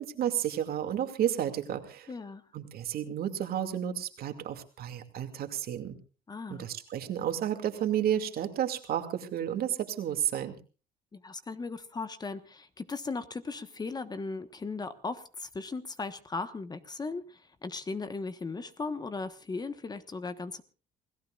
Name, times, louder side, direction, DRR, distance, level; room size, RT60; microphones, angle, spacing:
voice 1, 0.0-2.1 2.5-6.0 6.5-10.6, right 10 dB, 65° right, 7 dB, 2.4 m, -31 dB
voice 2, 2.1-2.4 6.3-6.7 11.1-20.6, left 3 dB, 25° left, 11 dB, 1.3 m, -37 dB
28.5 x 17.5 x 2.5 m, 0.36 s
cardioid pair, 110°, 17 cm